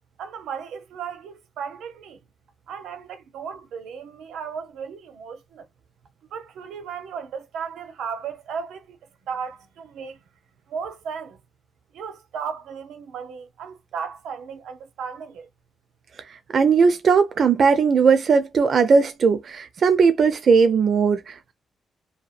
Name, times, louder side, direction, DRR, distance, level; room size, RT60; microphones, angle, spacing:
voice 1, 0.2-2.2 2.7-5.7 6.3-9.0 9.3-10.2 10.7-11.4 11.9-15.5, right 6 dB, 90° right, 0.6 m, -35 dB
voice 2, 16.5-21.5, right 5 dB, 50° right, 0.4 m, -18 dB
2.7 x 2.2 x 2.4 m
cardioid pair, 120°, 0 cm